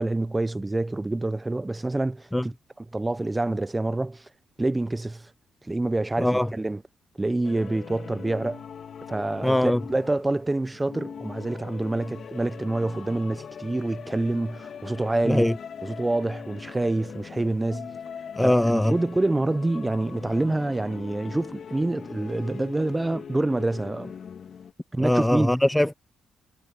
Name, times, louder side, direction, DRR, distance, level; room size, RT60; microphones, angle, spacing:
voice 1, 0.0-4.3 4.6-5.3 5.6-6.8 7.2-8.6 9.1-15.5 15.8-17.9 18.4-24.1 24.9-25.5, right 2 dB, 15° right, 0.8 m, -27 dB
voice 2, 6.2-6.5 9.4-9.8 15.3-15.5 18.4-18.9 25.0-25.9, left 1 dB, 5° left, 0.4 m, -21 dB
sound 1, 7.4-24.7, left 7 dB, 55° left, 2.4 m, -41 dB
cardioid pair, 90°, 0 cm